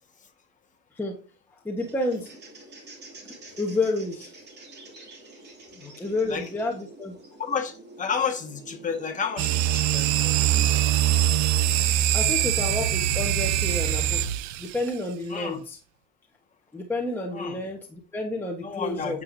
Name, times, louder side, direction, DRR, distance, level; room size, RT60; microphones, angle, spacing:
voice 1, 1.5-2.3 3.2-4.3 6.0-7.2 11.6-11.8 12.1-14.3 14.6-15.8 16.7-19.2, left 2 dB, 5° left, -1 dB, 1.3 m, -30 dB
sound 1, 1.8-10.0, right 2 dB, 30° right, 2.6 m, -47 dB
voice 2, 5.7-6.4 7.4-10.4 15.3-15.6 17.3-17.6 18.6-19.2, left 6 dB, 20° left, 3 dB, 1.6 m, -31 dB
sound 2, 9.4-14.9, right 12 dB, 55° right, 0.7 m, -23 dB
9.4 x 7.9 x 2.7 m, 0.35 s
cardioid pair, 140°, 34 cm